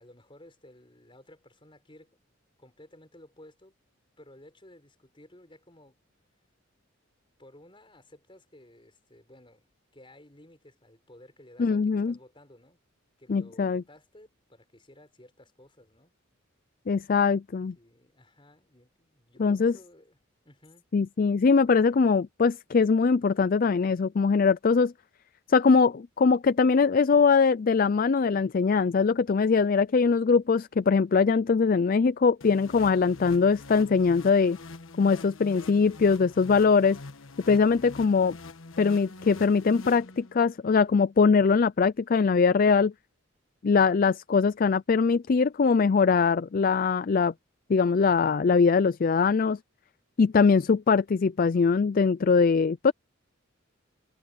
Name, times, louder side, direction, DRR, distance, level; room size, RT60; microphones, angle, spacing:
voice 1, 0.0-2.2 2.6-3.7 4.2-6.0 7.4-12.8 13.2-16.1 17.5-20.2 20.4-20.8, left 1 dB, 25° left, 5.0 m, -55 dB
voice 2, 11.6-12.1 13.3-13.8 16.9-17.7 19.4-19.7 20.9-24.9 25.5-34.6 35.0-37.0 37.5-38.4 38.8-42.9 43.6-47.3 47.7-49.6 50.2-52.9, left 5 dB, 45° left, 0.4 m, -22 dB
sound 1, 32.4-40.6, left 3 dB, 80° left, 1.3 m, -45 dB
head